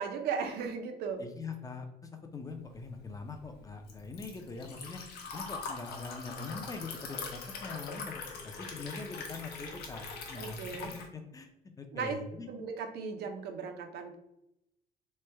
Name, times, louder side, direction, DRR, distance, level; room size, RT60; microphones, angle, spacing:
voice 1, 0.0-1.2 10.4-10.9 11.9-12.2 12.5-14.2, right 6 dB, 70° right, 5 dB, 0.6 m, -36 dB
voice 2, 1.2-5.0 5.3-11.5 11.8-12.5, left 4 dB, 20° left, 5 dB, 0.4 m, -43 dB
Liquid, 2.8-11.1, left 4 dB, 75° left, 0.8 m, -42 dB
3.2 x 2.2 x 3.2 m, 0.84 s
cardioid pair, 110°, 17 cm